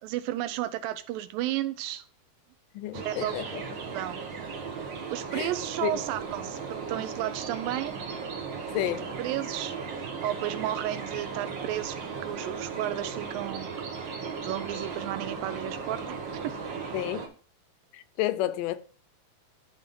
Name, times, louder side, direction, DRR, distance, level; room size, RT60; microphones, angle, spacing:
voice 1, 0.0-2.0 2.9-3.4 3.9-4.2 5.1-6.6 6.9-7.9 8.9-9.0 9.2-9.8 10.2-12.0 12.2-13.7 14.4-16.5, right 13 dB, 85° right, 2.4 m, -33 dB
voice 2, 2.8-3.6 5.3-5.5 5.8-6.0 8.7-9.1 16.9-17.3 17.9-18.8, left 14 dB, 80° left, 2.2 m, -31 dB
sound 1, 2.9-17.3, right 5 dB, 60° right, 1.1 m, -36 dB
11.0 x 3.9 x 5.2 m
omnidirectional pair, 4.0 m